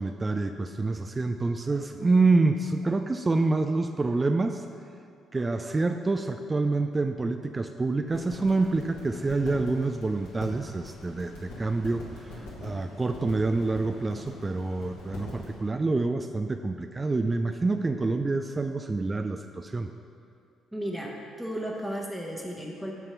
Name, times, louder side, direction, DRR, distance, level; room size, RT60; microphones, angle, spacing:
voice 1, 0.0-4.6 5.3-19.9, right 3 dB, 25° right, 7 dB, 0.3 m, -27 dB
sound 1, 8.1-15.6, left 1 dB, 70° left, 1.8 m, -43 dB
voice 2, 20.7-22.9, equal, 5° right, -1 dB, 1.0 m, -34 dB
7.8 x 4.3 x 5.9 m, 2.5 s
figure-of-eight pair, 45°, 0 cm